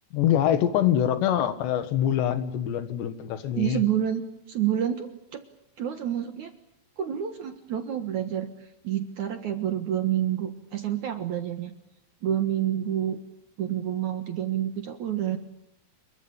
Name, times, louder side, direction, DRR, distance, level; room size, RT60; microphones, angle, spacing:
voice 1, 0.1-3.8, left 10 dB, 80° left, 11 dB, 3.9 m, -24 dB
voice 2, 3.6-5.4 5.8-6.5 7.0-11.7 12.2-13.2 13.6-15.4, right 10 dB, 60° right, 8 dB, 2.2 m, -28 dB
28.0 x 23.0 x 8.8 m, 0.76 s
omnidirectional pair, 5.0 m